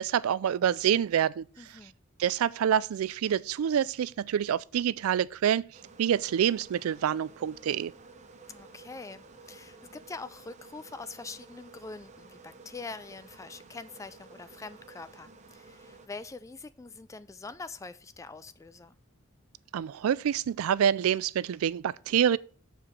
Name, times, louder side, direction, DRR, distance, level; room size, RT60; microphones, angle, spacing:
voice 1, 0.0-1.8 2.2-5.7 6.0-7.9 19.7-22.4, right 9 dB, 80° right, 0.3 m, -27 dB
voice 2, 1.6-2.0 8.5-19.0, left 3 dB, 15° left, 0.3 m, -44 dB
sound 1, 5.7-16.1, right 3 dB, 35° right, 0.7 m, -53 dB
6.8 x 4.8 x 5.6 m
head